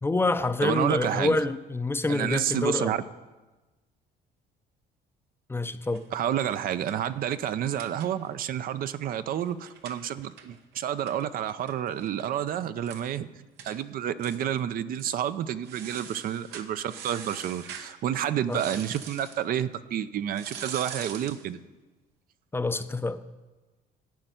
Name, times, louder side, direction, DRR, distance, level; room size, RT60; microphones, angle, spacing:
voice 1, 0.0-2.9 5.5-6.0 18.5-18.6 22.5-23.2, left 2 dB, 15° left, 0.5 m, -27 dB
voice 2, 0.6-1.4 2.1-3.0 6.1-13.3 13.6-21.6, right 10 dB, 60° right, 0.5 m, -29 dB
sound 1, 5.8-8.5 8.8-8.9 9.1-12.3 12.6-12.7 12.9-13.1 13.6-13.8 14.2-14.6 14.9-15.2 15.6-17.9 18.5-19.4 20.3-21.5, right 7 dB, 85° right, 1.1 m, -44 dB
12.0 x 5.4 x 8.9 m
cardioid pair, 110°, 17 cm